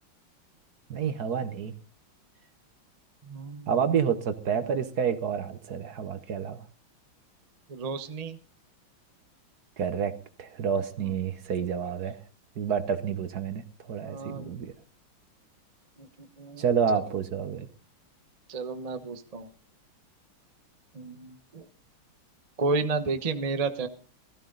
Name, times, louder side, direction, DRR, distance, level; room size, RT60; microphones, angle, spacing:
voice 1, 0.9-1.7 3.7-6.6 9.8-10.1 10.4-12.2 12.6-14.7 16.6-17.7, right 7 dB, 55° right, 11 dB, 1.4 m, -29 dB
voice 2, 3.2-3.8 7.7-8.4 11.0-11.1 14.0-14.5 16.0-17.0 18.5-19.5 20.9-21.7 22.6-23.9, right 4 dB, 30° right, 9 dB, 0.7 m, -32 dB
17.0 x 14.5 x 3.9 m, 0.35 s
omnidirectional pair, 2.2 m